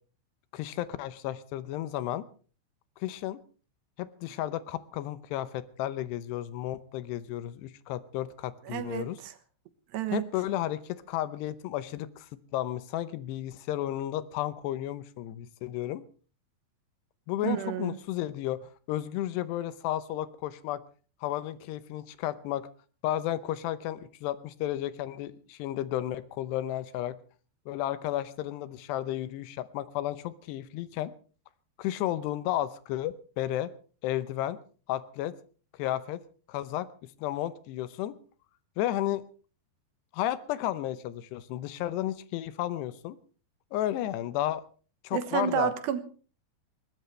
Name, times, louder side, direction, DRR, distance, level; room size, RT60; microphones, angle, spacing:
voice 1, 0.5-2.3 3.0-3.4 4.0-9.2 10.1-16.0 17.3-20.8 21.2-22.7 23.0-27.2 27.7-31.1 31.8-33.7 34.0-34.6 34.9-35.3 35.7-36.2 36.5-36.9 37.2-38.1 38.8-39.2 40.1-43.2 43.7-44.6 45.0-45.7, left 13 dB, 80° left, 2.9 m, -33 dB
voice 2, 8.7-9.1 9.9-10.3 17.4-18.0 45.1-46.0, right 10 dB, 80° right, 3.3 m, -30 dB
20.5 x 18.5 x 3.3 m
omnidirectional pair, 4.9 m